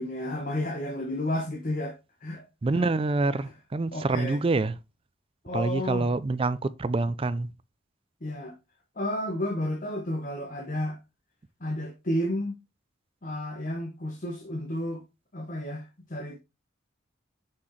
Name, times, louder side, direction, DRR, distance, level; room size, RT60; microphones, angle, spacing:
voice 1, 0.0-2.5 2.7-2.9 3.3-3.5 3.9-4.4 5.4-6.1 8.2-8.6 9.0-11.0 11.6-12.6 13.2-15.0 15.3-16.4, left 1 dB, 40° left, 1.1 m, -32 dB
voice 2, 2.6-4.7 5.5-7.5, right 3 dB, 25° right, 0.4 m, -26 dB
6.0 x 5.9 x 3.2 m
head